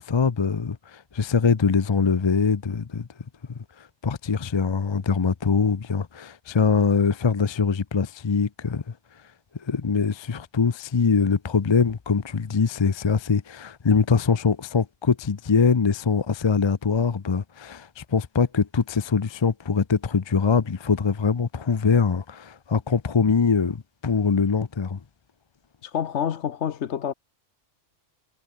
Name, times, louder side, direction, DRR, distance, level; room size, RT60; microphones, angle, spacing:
voice 1, 0.1-3.1 3.8-8.8 9.6-25.0, left 5 dB, 30° left, 0.5 m, -23 dB
voice 2, 25.8-27.1, left 8 dB, 70° left, 1.2 m, -28 dB
omnidirectional pair, 1.2 m